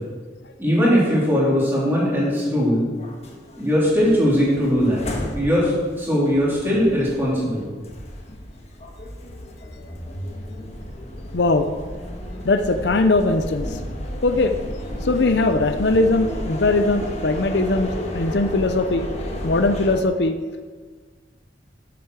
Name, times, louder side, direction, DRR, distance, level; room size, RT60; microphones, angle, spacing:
voice 1, 0.6-2.9 3.6-5.0 5.3-7.6, equal, 10° right, -7 dB, 3.3 m, -20 dB
sound 1, 3.0-20.0, equal, 35° left, 1.4 m, -33 dB
voice 2, 11.3-11.7 12.4-13.7 14.2-14.6 15.0-17.9 18.1-19.0 19.4-20.4, left 2 dB, 65° left, 8 dB, 0.6 m, -20 dB
8.2 x 7.8 x 6.5 m, 1.5 s
head